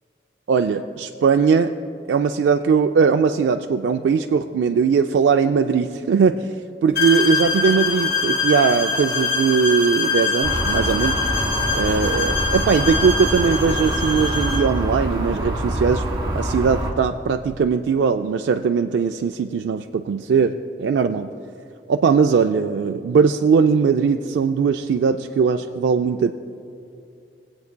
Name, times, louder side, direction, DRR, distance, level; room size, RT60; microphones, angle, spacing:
voice 1, 0.5-1.7 2.1-6.6 6.8-11.2 11.7-21.3 21.9-26.3, right 5 dB, 85° right, 6 dB, 0.3 m, -20 dB
sound 1, 7.0-14.7, left 4 dB, 65° left, 2.3 m, -24 dB
sound 2, 10.4-16.9, right 1 dB, 30° right, 1.2 m, -25 dB
21.5 x 8.1 x 2.2 m, 2.6 s
head